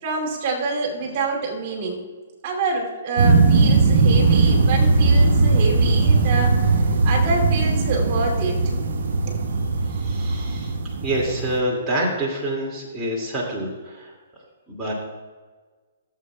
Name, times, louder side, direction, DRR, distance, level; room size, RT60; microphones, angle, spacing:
voice 1, 0.0-2.0 2.4-8.6 9.3-9.4, right 3 dB, 45° right, 0 dB, 2.6 m, -27 dB
sound 1, 3.2-11.6, right 3 dB, 65° right, 1.2 m, -19 dB
voice 2, 9.9-10.7 11.0-14.1 14.7-14.9, right 1 dB, 10° right, -6 dB, 2.2 m, -27 dB
17.5 x 7.7 x 2.3 m, 1.4 s
hypercardioid pair, 135°, 0 cm